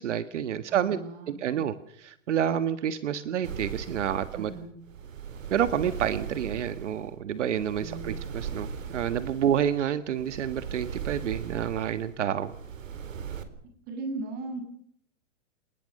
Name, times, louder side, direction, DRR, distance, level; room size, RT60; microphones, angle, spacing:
voice 1, 0.0-1.0 1.3-4.5 5.5-12.5, right 9 dB, 65° right, 12 dB, 1.6 m, -29 dB
voice 2, 0.7-1.5 4.3-4.8 7.8-8.2 13.9-14.6, right 3 dB, 25° right, 6 dB, 7.1 m, -37 dB
sound 1, 3.4-13.4, right 7 dB, 90° right, 4.4 m, -39 dB
28.0 x 20.0 x 6.6 m, 0.69 s
hypercardioid pair, 170°, 38 cm